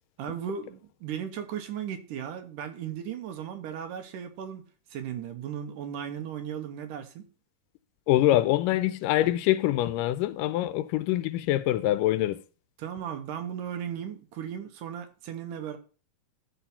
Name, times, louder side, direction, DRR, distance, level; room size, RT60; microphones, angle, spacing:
voice 1, 0.2-4.6 4.9-7.3 12.8-15.8, right 8 dB, 75° right, 2.4 m, -36 dB
voice 2, 8.1-12.4, left 14 dB, 85° left, 2.2 m, -24 dB
12.5 x 4.3 x 5.8 m
omnidirectional pair, 3.9 m